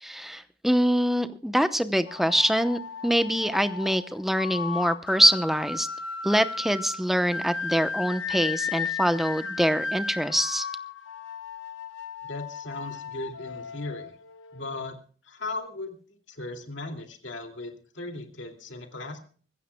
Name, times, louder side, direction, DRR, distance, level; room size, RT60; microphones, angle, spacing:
voice 1, 0.0-5.9 6.2-10.7, equal, ahead, 11 dB, 0.8 m, -24 dB
sound 1, 2.1-14.9, left 5 dB, 85° left, 1.2 m, -35 dB
voice 2, 12.2-14.1 14.5-15.0 15.2-19.2, left 2 dB, 70° left, 4 dB, 2.6 m, -37 dB
24.5 x 15.0 x 2.3 m, 0.43 s
head